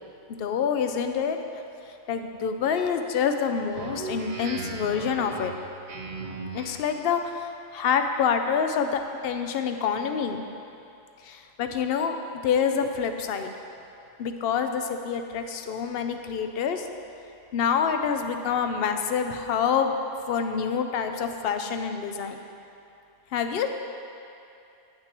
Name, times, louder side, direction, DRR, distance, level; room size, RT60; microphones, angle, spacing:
voice 1, 0.4-1.4 2.1-5.5 6.5-10.4 11.2-12.2 12.4-13.5 14.2-16.9 17.5-20.0 20.3-22.4 23.3-23.7, left 7 dB, 70° left, 6 dB, 0.8 m, -27 dB
Speech synthesizer, 3.7-7.1, right 3 dB, 45° right, 0.7 m, -37 dB
9.5 x 9.0 x 3.0 m, 2.7 s
omnidirectional pair, 1.1 m